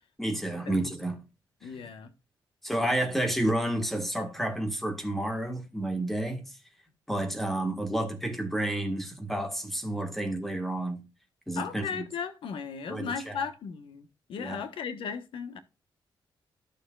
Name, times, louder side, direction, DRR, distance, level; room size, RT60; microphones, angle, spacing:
voice 1, 0.2-1.2 1.6-1.9 2.6-6.6 7.1-11.0 11.5-12.1 12.9-13.4 14.4-14.6, right 1 dB, 5° left, 1.6 m, -30 dB
voice 2, 1.6-2.1 11.6-15.6, left 6 dB, 80° left, 1.2 m, -36 dB
12.0 x 6.8 x 2.4 m
wide cardioid pair, 160°, 9 cm